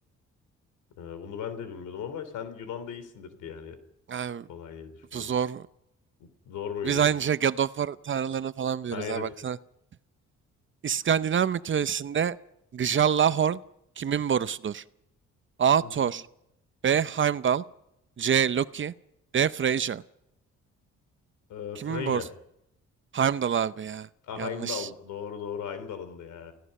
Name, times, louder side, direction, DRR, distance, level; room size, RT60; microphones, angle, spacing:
voice 1, 1.0-3.8 4.5-5.3 6.2-7.0 8.9-9.3 15.8-16.1 21.5-22.3 24.2-26.5, left 7 dB, 80° left, 11 dB, 3.5 m, -37 dB
voice 2, 4.1-4.5 5.1-5.6 6.8-9.6 10.8-12.4 12.7-13.6 14.0-14.8 15.6-16.2 16.8-17.6 18.2-18.9 19.3-20.0 21.8-22.2 23.1-24.1 24.4-24.9, right 8 dB, 40° right, 15 dB, 0.7 m, -26 dB
29.0 x 16.5 x 5.5 m, 0.81 s
cardioid pair, 90°, 30 cm